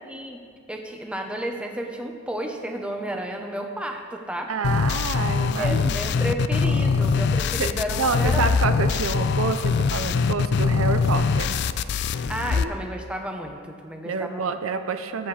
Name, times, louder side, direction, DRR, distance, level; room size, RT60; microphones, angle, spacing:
voice 1, 0.0-0.4 0.7-4.5 5.6-8.5 12.3-14.5, right 1 dB, 5° right, 2 dB, 1.0 m, -32 dB
voice 2, 4.5-6.0 7.6-11.6 12.5-12.7 14.0-15.3, right 4 dB, 80° right, 8 dB, 0.6 m, -28 dB
sound 1, 4.6-12.6, left 5 dB, 55° left, 0.4 m, -23 dB
21.0 x 7.9 x 3.4 m, 2.2 s
head